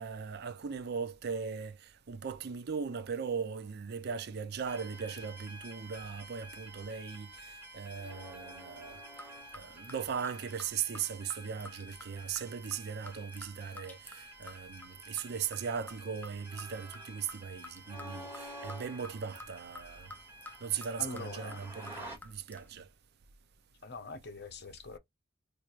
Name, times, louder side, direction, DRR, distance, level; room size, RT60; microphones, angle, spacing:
voice 1, 0.0-9.0 9.5-20.1 20.6-22.9, right 6 dB, 50° right, 0.5 m, -38 dB
sound 1, 4.7-22.2, right 1 dB, 10° right, 2.0 m, -50 dB
sound 2, 8.9-22.7, left 2 dB, 10° left, 0.5 m, -53 dB
voice 2, 21.0-21.6 22.7-22.8 23.8-25.0, left 3 dB, 55° left, 0.8 m, -43 dB
4.4 x 2.5 x 2.4 m
head